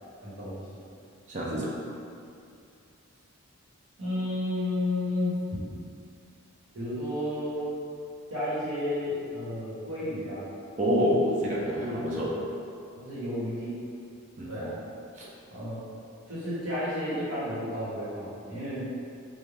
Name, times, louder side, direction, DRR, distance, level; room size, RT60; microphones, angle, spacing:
voice 1, 0.2-0.8 4.0-5.6 6.7-7.7 8.3-10.5 11.7-12.0 13.0-13.8 14.5-14.7 15.5-15.8 16.3-18.9, left 1 dB, 80° right, -11 dB, 1.1 m, -32 dB
voice 2, 1.3-1.8 10.8-12.4 14.4-14.7 15.1-15.3, equal, 35° right, -5 dB, 0.4 m, -27 dB
2.5 x 2.3 x 3.2 m, 2.5 s
head